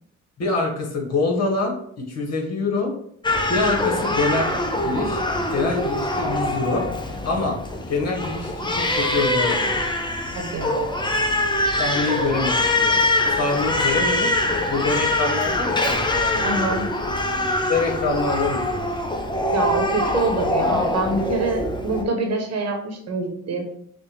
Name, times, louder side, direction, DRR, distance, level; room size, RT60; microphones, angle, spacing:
voice 1, 0.4-2.9 3.5-4.5 4.8-5.2 5.5-6.8 7.2-7.6 7.9-9.8 11.8-13.0 13.3-14.4 14.7-16.7 17.7-18.9, left 3 dB, 55° left, 0 dB, 1.7 m, -25 dB
Crying sobbing, 3.2-22.0, left 1 dB, 15° left, 0.7 m, -23 dB
voice 2, 10.3-10.9 16.4-16.9 19.5-23.6, right 2 dB, 60° right, 3 dB, 1.2 m, -25 dB
6.1 x 2.4 x 3.5 m, 0.68 s
cardioid pair, 90°, 30 cm